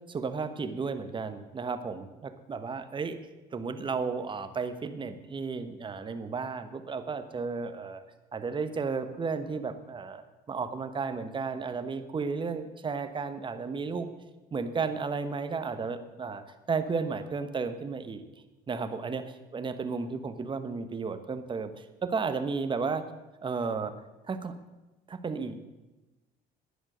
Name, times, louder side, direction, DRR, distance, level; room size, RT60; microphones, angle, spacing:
voice 1, 0.1-3.2 3.5-8.0 8.3-10.2 10.5-14.1 14.5-16.4 16.7-18.2 18.7-23.0 23.4-23.9 24.3-24.5 25.1-25.6, right 4 dB, 30° right, 9 dB, 1.1 m, -33 dB
10.0 x 10.0 x 6.7 m, 1.1 s
cardioid pair, 110°, 17 cm